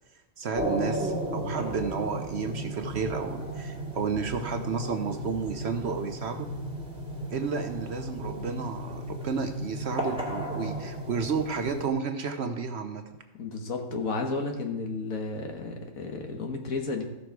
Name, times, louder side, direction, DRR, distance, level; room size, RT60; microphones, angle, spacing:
voice 1, 0.4-6.5 7.3-13.0, right 5 dB, 55° right, 7 dB, 0.9 m, -32 dB
sound 1, 0.5-11.9, right 1 dB, 5° right, 1.9 m, -34 dB
voice 2, 13.4-17.0, left 3 dB, 75° left, 3 dB, 1.7 m, -32 dB
14.5 x 6.3 x 4.6 m, 1.0 s
omnidirectional pair, 1.5 m